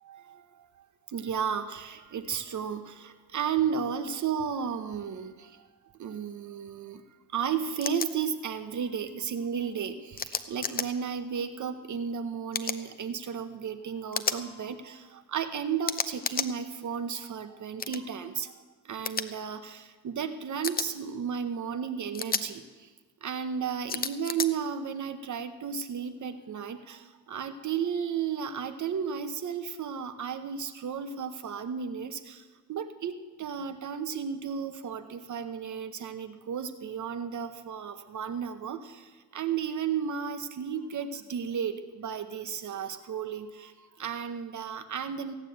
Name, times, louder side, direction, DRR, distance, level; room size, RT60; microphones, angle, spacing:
voice 1, 0.0-5.7 6.0-7.0 7.3-22.9 23.2-45.4, right 7 dB, 50° right, 10 dB, 0.9 m, -34 dB
sound 1, 7.8-8.1 10.2-10.9 12.5-12.8 14.1-14.4 15.8-16.5 17.8-18.0 19.0-19.2 20.6-20.9 22.1-22.4 23.9-24.5, left 5 dB, 25° left, 0.7 m, -31 dB
16.0 x 9.7 x 7.9 m, 1.3 s
cardioid pair, 125°, 37 cm